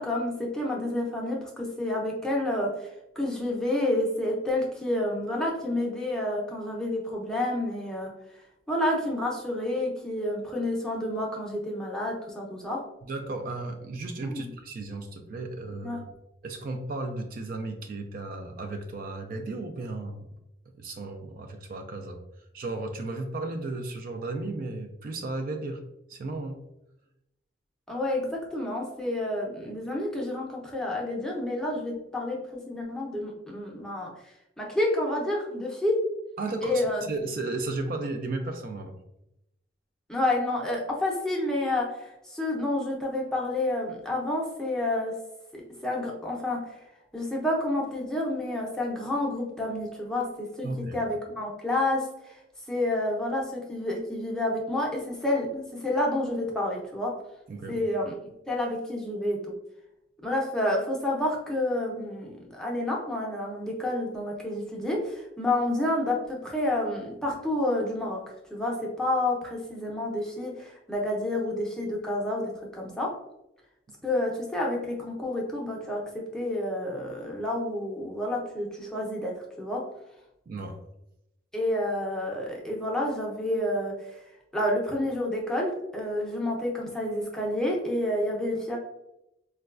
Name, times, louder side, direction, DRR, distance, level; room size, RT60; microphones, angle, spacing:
voice 1, 0.0-2.9 3.2-8.1 8.7-12.8 14.2-14.5 15.8-16.0 27.9-36.0 36.6-37.1 40.1-45.1 45.5-46.8 47.1-52.4 52.7-57.1 57.7-59.4 60.2-68.2 68.5-73.1 74.0-79.8 81.5-84.2 84.5-88.8, left 1 dB, 5° left, -2 dB, 0.6 m, -29 dB
voice 2, 13.1-16.0 16.4-20.2 20.8-22.2 22.5-25.8 26.1-26.6 36.4-39.0 50.6-51.0 57.5-57.8 80.5-80.8, right 2 dB, 50° right, 5 dB, 0.3 m, -34 dB
4.0 x 2.2 x 2.3 m, 0.86 s
head